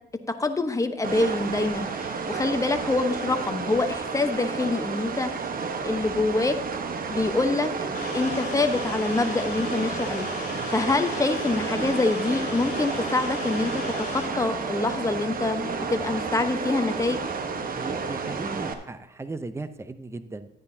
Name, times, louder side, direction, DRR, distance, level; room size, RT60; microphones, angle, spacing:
voice 1, 0.4-5.3 5.8-6.6 7.1-7.7 8.1-17.2, left 3 dB, 15° left, 7 dB, 1.0 m, -26 dB
sound 1, 1.0-18.7, right 5 dB, 45° right, 1.1 m, -31 dB
sound 2, 7.9-14.3, left 3 dB, 55° left, 4.0 m, -36 dB
voice 2, 17.7-20.5, right 3 dB, 15° right, 11 dB, 0.7 m, -37 dB
12.0 x 9.5 x 2.8 m, 0.79 s
cardioid pair, 90°, 20 cm